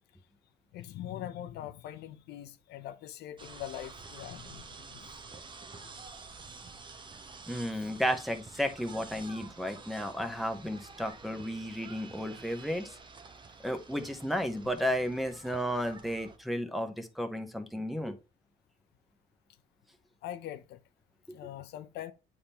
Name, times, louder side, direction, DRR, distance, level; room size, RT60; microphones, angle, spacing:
voice 1, 0.7-5.1 5.8-5.9 7.7-8.2 20.2-20.8 21.3-22.1, left 12 dB, 75° left, 0.7 m, -43 dB
sound 1, 3.4-16.4, right 4 dB, 30° right, 0.9 m, -49 dB
voice 2, 7.5-12.9 13.6-18.1, equal, ahead, 1.1 m, -33 dB
8.7 x 3.6 x 4.3 m
cardioid pair, 110°, 17 cm